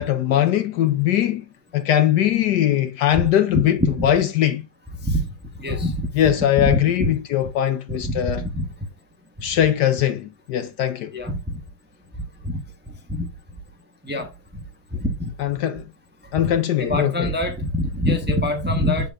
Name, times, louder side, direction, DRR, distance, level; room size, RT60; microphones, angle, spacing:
voice 1, 0.0-1.4 1.7-4.7 6.1-8.4 9.4-11.1 15.4-15.9 16.3-17.3, left 11 dB, 70° left, 1.1 m, -20 dB
voice 2, 5.5-6.1 6.6-7.1 7.9-8.7 11.1-11.6 12.4-12.6 13.1-13.3 14.0-14.3 14.9-15.3 16.4-19.1, left 1 dB, 10° right, 0.8 m, -24 dB
8.1 x 7.1 x 2.5 m
omnidirectional pair, 2.1 m